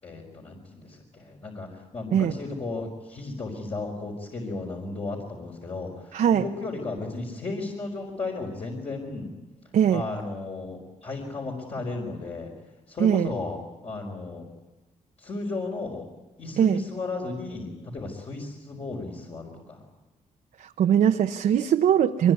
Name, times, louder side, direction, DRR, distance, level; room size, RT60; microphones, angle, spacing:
voice 1, 0.0-9.3 9.9-12.5 12.9-14.5 15.2-16.1 16.4-19.8, left 3 dB, 45° left, -1 dB, 4.8 m, -34 dB
voice 2, 6.1-6.4 9.7-10.0 13.0-13.3 16.6-16.8 20.6-22.3, right 9 dB, 75° right, 4 dB, 0.9 m, -21 dB
23.5 x 21.0 x 9.6 m, 1.1 s
cardioid pair, 115°, 14 cm